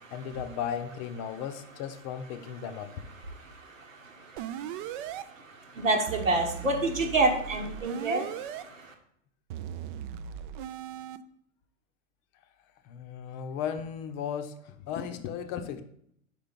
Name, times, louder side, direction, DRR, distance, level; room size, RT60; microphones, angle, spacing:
voice 1, 0.1-2.9 12.9-15.8, left 8 dB, 40° left, 8 dB, 0.6 m, -36 dB
sound 1, 4.4-5.2 6.1-8.6 9.5-11.2, right 9 dB, 45° right, 0.4 m, -38 dB
voice 2, 5.8-8.2, right 2 dB, 85° right, 2 dB, 1.4 m, -26 dB
4.8 x 4.6 x 5.1 m, 0.71 s
hypercardioid pair, 100°, 38 cm